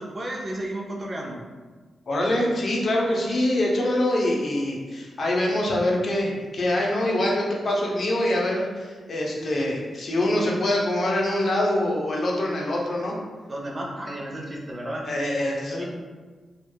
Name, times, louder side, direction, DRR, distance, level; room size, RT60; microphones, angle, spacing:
voice 1, 0.0-1.4 13.5-15.1 15.7-15.9, right 1 dB, 35° right, -1 dB, 0.5 m, -33 dB
voice 2, 2.1-13.2 15.1-15.9, left 1 dB, 55° left, -2 dB, 0.6 m, -24 dB
2.7 x 2.2 x 2.2 m, 1.4 s
cardioid pair, 55°, 0 cm